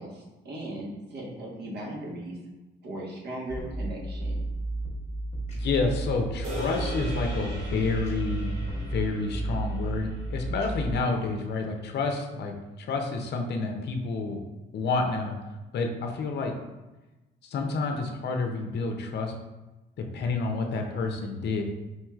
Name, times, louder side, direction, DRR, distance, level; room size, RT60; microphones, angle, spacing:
voice 1, 0.0-2.4 2.8-4.4, right 1 dB, 55° right, -2 dB, 1.1 m, -38 dB
sound 1, 3.5-11.0, right 2 dB, 35° left, 1.1 m, -33 dB
voice 2, 5.5-14.4 14.7-15.3 15.7-16.5 17.4-19.3 20.0-21.6, left 3 dB, 60° left, 4 dB, 0.6 m, -29 dB
sound 2, 6.4-10.9, right 1 dB, 90° right, 1.2 m, -41 dB
4.4 x 3.0 x 2.3 m, 1.1 s
cardioid pair, 90°, 20 cm